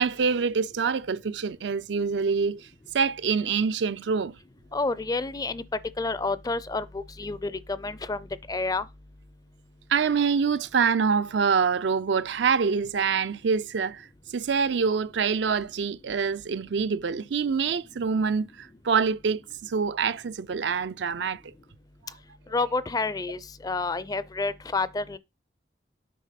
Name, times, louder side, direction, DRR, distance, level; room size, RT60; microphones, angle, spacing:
voice 1, 0.0-2.7 2.9-4.3 9.9-21.5, right 5 dB, 70° right, 0.5 m, -25 dB
voice 2, 4.7-5.6 6.0-8.8 22.5-25.2, left 3 dB, 20° left, 0.5 m, -29 dB
8.5 x 3.4 x 5.7 m
head